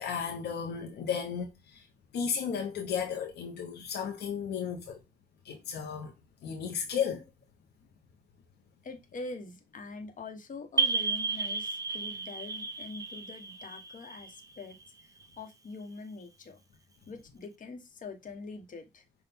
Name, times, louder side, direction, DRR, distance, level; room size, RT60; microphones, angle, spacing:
voice 1, 0.0-1.8 2.1-5.0 5.4-6.1 6.4-7.3, left 7 dB, 80° left, 1.0 m, -34 dB
voice 2, 8.8-14.8 15.0-16.6 17.1-19.0, left 3 dB, 50° left, 1.2 m, -44 dB
sound 1, 10.8-15.2, right 4 dB, 20° right, 0.5 m, -33 dB
6.0 x 2.5 x 3.5 m
cardioid pair, 75°, 17 cm